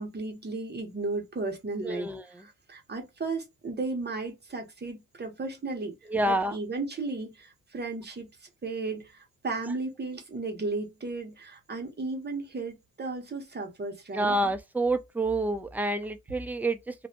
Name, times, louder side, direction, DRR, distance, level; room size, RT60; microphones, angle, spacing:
voice 1, 0.0-5.9 6.2-8.3 8.6-14.4, right 3 dB, 30° right, 1.3 m, -35 dB
voice 2, 1.8-2.2 6.1-6.6 14.1-16.9, right 2 dB, 5° right, 0.5 m, -28 dB
3.1 x 2.6 x 2.8 m
cardioid pair, 95°, 35 cm